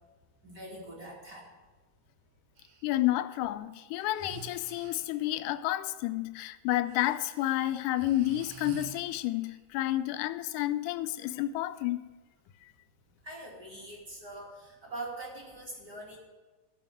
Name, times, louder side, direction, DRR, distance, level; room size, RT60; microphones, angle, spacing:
voice 1, 0.4-1.5 13.2-16.2, right 2 dB, 30° right, 2.5 m, -43 dB
Breathing, 2.6-2.8 4.0-5.2 6.9-9.6, right 7 dB, 65° right, 1.6 m, -48 dB
voice 2, 2.8-12.1 12.6-12.7, left 14 dB, 80° left, 2.0 m, -30 dB
13.0 x 5.3 x 8.9 m
omnidirectional pair, 3.9 m